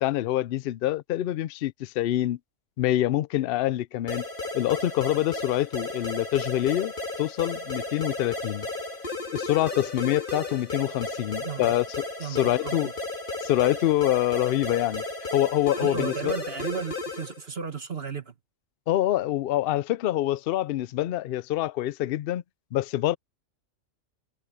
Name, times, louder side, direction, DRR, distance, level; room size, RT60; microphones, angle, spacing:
voice 1, 0.0-2.4 2.8-4.2 4.5-6.9 7.2-8.7 9.3-12.9 13.4-15.0 15.3-16.4 18.9-22.4 22.7-23.2, left 13 dB, 65° left, 0.6 m, -26 dB
sound 1, 4.1-17.4, left 2 dB, 40° left, 2.5 m, -34 dB
voice 2, 12.2-12.9 15.8-18.3, right 6 dB, 50° right, 1.9 m, -34 dB
omnidirectional pair, 1.4 m